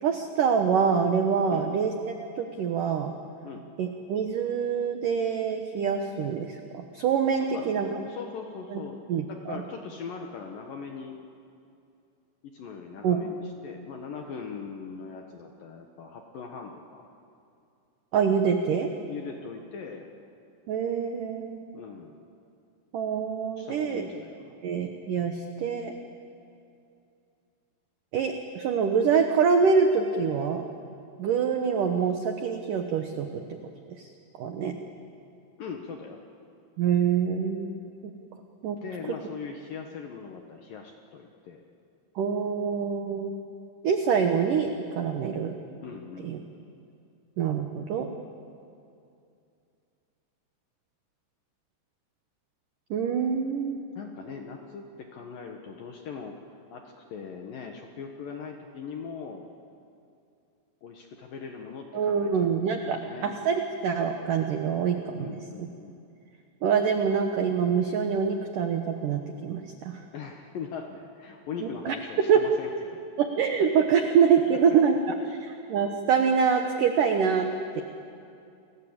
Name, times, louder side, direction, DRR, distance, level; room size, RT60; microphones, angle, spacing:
voice 1, 0.0-3.1 3.8-8.0 8.7-8.8 9.1-9.6 13.0-13.2 18.1-18.9 20.7-21.6 22.9-24.1 24.6-25.9 28.1-30.6 31.2-33.3 34.0-34.1 34.4-34.7 36.8-37.7 38.6-38.8 42.2-43.3 43.8-45.6 46.2-46.4 47.4-48.1 52.9-53.8 61.9-65.3 65.6-65.7 66.6-70.0 71.8-72.0 72.3-72.4 73.2-75.0 75.3-77.8, right 6 dB, 85° right, 5 dB, 1.8 m, -25 dB
voice 2, 1.5-1.9 3.4-3.6 7.4-7.8 8.0-11.2 12.5-17.1 19.1-20.1 21.7-22.2 23.6-24.6 35.6-36.2 38.8-41.6 45.8-46.3 53.9-56.4 56.7-59.5 60.8-62.5 62.8-63.3 65.2-66.0 70.1-73.0 74.5-74.8 75.4-75.5, left 6 dB, 65° left, 3 dB, 2.2 m, -40 dB
30.0 x 21.0 x 8.8 m, 2.6 s
omnidirectional pair, 5.7 m